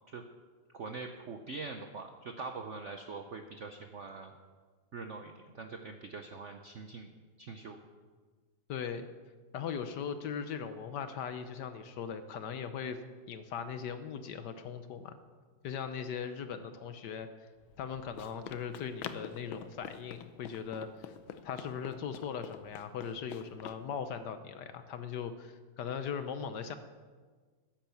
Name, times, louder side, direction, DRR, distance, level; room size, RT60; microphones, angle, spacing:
voice 1, 0.7-4.3 4.9-7.1 7.4-7.8, right 4 dB, 65° right, 5 dB, 0.7 m, -43 dB
voice 2, 8.7-9.1 9.5-13.0 13.3-15.2 15.6-17.3 17.8-21.1 21.4-26.8, left 7 dB, 65° left, 10 dB, 1.2 m, -39 dB
Run, 17.6-23.8, left 9 dB, 85° left, 1.5 m, -47 dB
10.5 x 10.0 x 7.1 m, 1.5 s
omnidirectional pair, 2.2 m